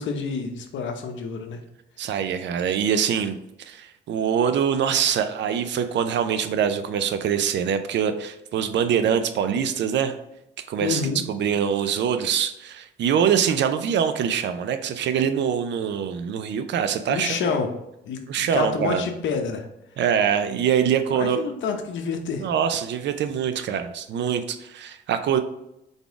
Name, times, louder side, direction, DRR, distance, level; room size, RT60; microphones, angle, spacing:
voice 1, 0.0-1.6 10.8-11.2 17.1-17.7 18.0-19.7 21.1-22.5, left 5 dB, 70° left, 5 dB, 0.8 m, -28 dB
voice 2, 2.0-10.1 10.7-11.0 11.3-17.6 18.3-19.1 20.0-21.4 22.4-25.4, right 8 dB, 65° right, 9 dB, 0.5 m, -24 dB
4.0 x 3.5 x 3.5 m, 0.86 s
cardioid pair, 90°, 20 cm